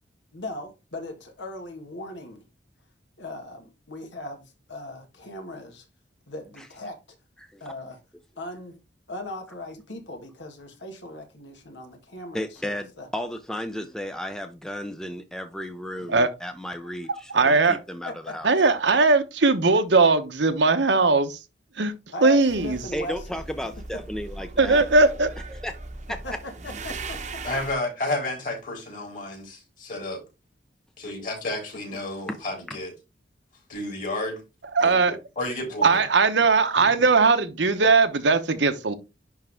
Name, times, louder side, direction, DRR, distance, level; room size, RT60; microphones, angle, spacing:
voice 1, 0.3-2.4 3.2-5.9 6.3-7.0 7.6-8.0 8.4-8.8 9.1-13.1 18.0-18.3 22.1-23.4 26.2-26.5 26.8-27.4, left 2 dB, 80° left, 1.9 m, -38 dB
voice 2, 12.3-18.5 22.9-24.8 25.5-25.7 26.1-26.2 32.7-32.8, equal, 5° left, 0.5 m, -34 dB
voice 3, 17.3-17.8 18.4-21.4 21.8-21.9 22.2-22.8 24.6-25.3 34.7-35.2 35.8-38.9, right 3 dB, 75° right, 1.0 m, -19 dB
sound 1, 22.5-27.7, right 3 dB, 40° right, 0.9 m, -38 dB
voice 4, 27.4-30.2 31.0-32.9 33.7-34.4 34.8-36.0, left 2 dB, 45° left, 3.9 m, -31 dB
10.5 x 3.5 x 3.5 m
head